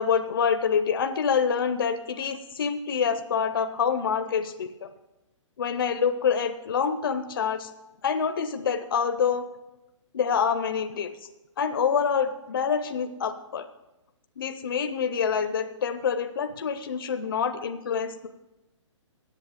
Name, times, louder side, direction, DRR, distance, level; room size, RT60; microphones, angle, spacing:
voice 1, 0.0-4.9 5.6-7.7 8.0-9.5 10.1-11.1 11.6-13.7 14.4-18.3, left 6 dB, 45° left, 9 dB, 0.5 m, -26 dB
8.2 x 7.2 x 7.4 m, 1.0 s
hypercardioid pair, 180°, 16 cm